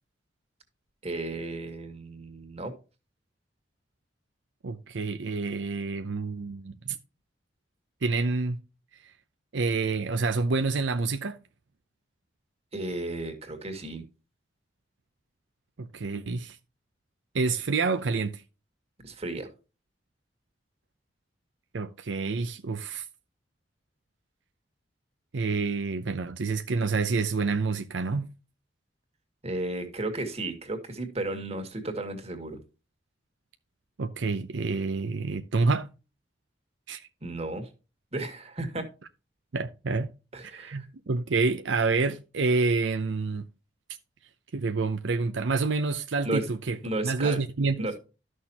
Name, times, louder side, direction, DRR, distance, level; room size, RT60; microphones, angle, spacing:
voice 1, 1.0-2.7 12.7-14.0 19.0-19.5 29.4-32.6 37.2-37.7 38.1-38.8 40.3-40.9 46.2-46.5 46.8-47.4 47.8-48.0, right 2 dB, 35° right, 2.0 m, -34 dB
voice 2, 4.6-7.0 8.0-8.6 9.5-11.4 15.8-16.6 17.3-18.4 21.7-23.0 25.3-28.3 34.0-35.9 36.9-37.1 39.5-40.1 40.4-43.4 44.5-46.8 47.0-47.9, right 4 dB, 75° right, 0.6 m, -28 dB
13.0 x 6.4 x 2.8 m
head